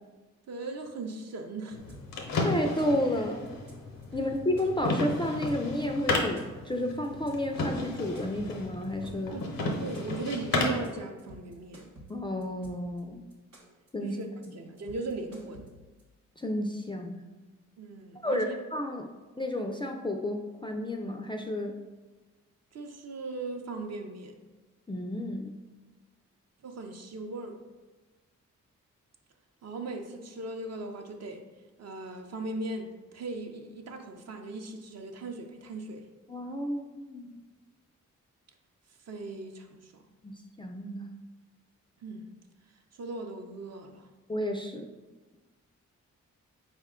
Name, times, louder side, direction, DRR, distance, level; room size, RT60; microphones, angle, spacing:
voice 1, 0.5-2.0 9.3-9.5 9.8-11.9 14.0-14.3 14.5-15.7 17.8-18.6 22.7-24.3 26.6-27.6 29.6-31.4 31.8-36.1 39.1-39.9 42.0-42.3 42.9-44.1, right 3 dB, 50° right, 4 dB, 0.6 m, -38 dB
sound 1, 1.7-10.9, left 2 dB, 85° left, 0.7 m, -33 dB
sound 2, 1.9-2.3 2.6-3.1 3.5-3.7 4.0-5.8 6.1-6.7 7.0-7.3 7.6-9.4 9.7-10.3 10.6-10.9 11.2-13.0 13.3-13.9 14.2-14.5 14.8-16.0, right 1 dB, 80° right, 0.9 m, -51 dB
voice 2, 2.4-3.5 4.1-9.3 12.1-13.3 13.9-14.2 16.4-17.2 18.2-18.5 18.7-19.1 19.4-21.8 24.9-25.6 36.3-37.4 40.2-41.1 44.3-44.9, left 1 dB, 15° left, 3 dB, 0.3 m, -31 dB
4.1 x 2.2 x 3.6 m, 1.2 s
supercardioid pair, 45°, 33 cm